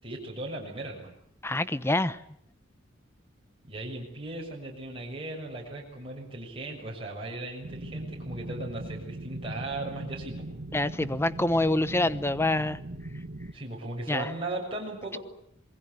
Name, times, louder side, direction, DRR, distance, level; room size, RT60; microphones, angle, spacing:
voice 1, 0.0-1.1 3.6-10.5 13.5-15.2, right 2 dB, 30° right, -2 dB, 6.7 m, -37 dB
voice 2, 1.4-2.2 10.7-12.8 14.1-14.3, left 2 dB, 15° left, 14 dB, 1.0 m, -26 dB
sound 1, 7.6-13.5, right 1 dB, 60° right, 1.7 m, -39 dB
27.0 x 22.0 x 8.3 m, 0.69 s
head